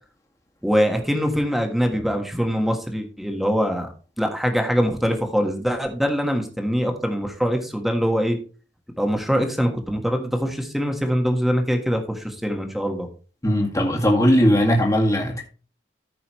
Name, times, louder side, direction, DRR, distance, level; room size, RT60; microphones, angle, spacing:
voice 1, 0.6-3.9 4.2-8.4 9.0-13.1, equal, ahead, 1.5 m, -23 dB
voice 2, 13.4-15.5, equal, 20° left, 1.9 m, -19 dB
14.0 x 5.4 x 3.1 m
head